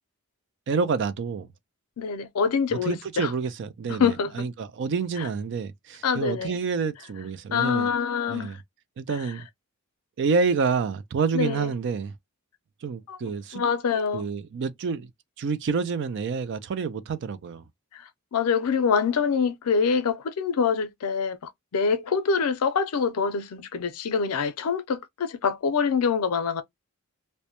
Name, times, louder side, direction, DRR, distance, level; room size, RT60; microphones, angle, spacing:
voice 1, 0.7-1.5 2.7-7.9 8.3-8.6 9.0-9.5 10.2-12.1 12.8-13.6 14.1-15.1 15.4-17.6, right 5 dB, 55° right, 0.3 m, -28 dB
voice 2, 2.0-3.3 3.9-4.5 5.2-5.3 6.0-6.5 7.5-8.5 11.3-11.7 13.1-13.2 13.5-14.3 17.9-26.6, left 6 dB, 85° left, 0.5 m, -25 dB
2.1 x 2.1 x 2.8 m
head